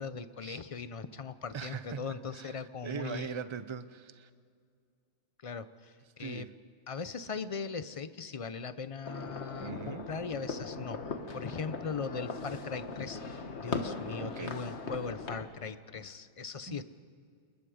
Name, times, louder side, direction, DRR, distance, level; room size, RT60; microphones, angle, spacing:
voice 1, 0.0-3.4 5.4-6.5 6.9-11.0 11.3-16.8, left 5 dB, 35° left, 13 dB, 0.7 m, -39 dB
voice 2, 1.5-4.3 6.2-6.5 9.6-10.1 14.2-14.6 16.7-16.8, right 6 dB, 30° right, 13 dB, 0.6 m, -41 dB
sound 1, 9.0-15.4, left 4 dB, 70° left, 1.6 m, -39 dB
29.5 x 20.5 x 5.1 m, 2.2 s
omnidirectional pair, 1.2 m